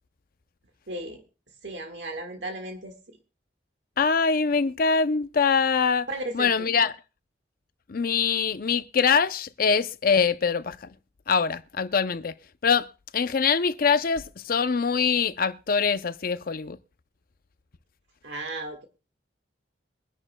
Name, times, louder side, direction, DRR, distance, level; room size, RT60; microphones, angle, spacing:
voice 1, 0.9-1.2 1.6-2.9 6.1-6.5 18.2-18.8, right 2 dB, 70° right, 1.6 m, -35 dB
voice 2, 4.0-6.1 6.3-6.9 7.9-10.9 11.3-12.3 12.6-12.9 13.1-16.8, left 5 dB, 50° left, 0.5 m, -23 dB
23.0 x 11.0 x 2.2 m
head